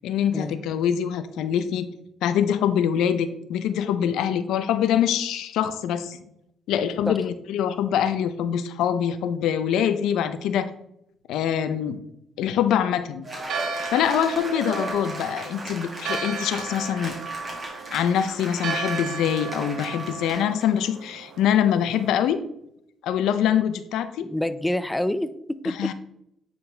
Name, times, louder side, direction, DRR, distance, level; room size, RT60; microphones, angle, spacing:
voice 1, 0.0-1.9 2.2-6.2 6.7-10.7 11.3-12.0 12.4-13.3 13.9-17.2 17.9-22.4 23.0-24.3 25.6-25.9, left 9 dB, 85° left, 11 dB, 0.5 m, -24 dB
Cheering / Applause, 13.2-20.8, right 1 dB, 30° right, 2.0 m, -37 dB
Church bell, 13.4-22.3, right 4 dB, 85° right, 0.9 m, -35 dB
voice 2, 24.2-25.9, left 1 dB, 5° left, 12 dB, 0.4 m, -27 dB
9.5 x 3.9 x 3.4 m, 0.76 s
cardioid pair, 90°, 0 cm